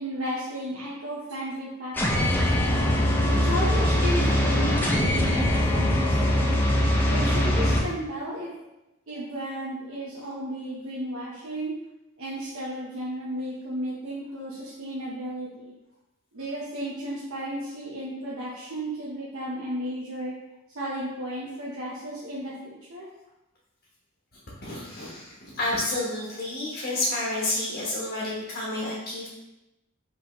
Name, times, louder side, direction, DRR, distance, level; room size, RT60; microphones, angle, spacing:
voice 1, 0.0-2.5 3.2-6.5 7.1-8.5 9.1-11.7 12.2-15.7 16.3-20.3 20.7-23.1, equal, 85° right, -6 dB, 0.8 m, -34 dB
sound 1, 1.9-7.8, left 1 dB, 10° left, 0.6 m, -22 dB
voice 2, 24.6-29.3, left 1 dB, 50° left, -5 dB, 1.0 m, -30 dB
5.3 x 3.0 x 3.0 m, 0.97 s
head